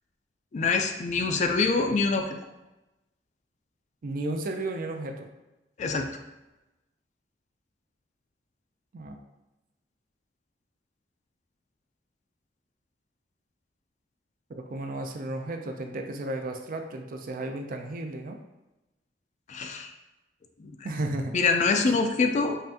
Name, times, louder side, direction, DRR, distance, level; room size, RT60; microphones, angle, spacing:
voice 1, 0.5-2.3 5.8-6.1 19.5-19.9 20.6-20.7 21.3-22.6, left 4 dB, 40° left, 5 dB, 0.3 m, -25 dB
voice 2, 4.0-5.3 8.9-9.2 14.5-18.4 20.8-21.3 21.8-21.9, right 2 dB, 50° right, 4 dB, 0.4 m, -33 dB
5.4 x 2.5 x 2.7 m, 1.0 s
head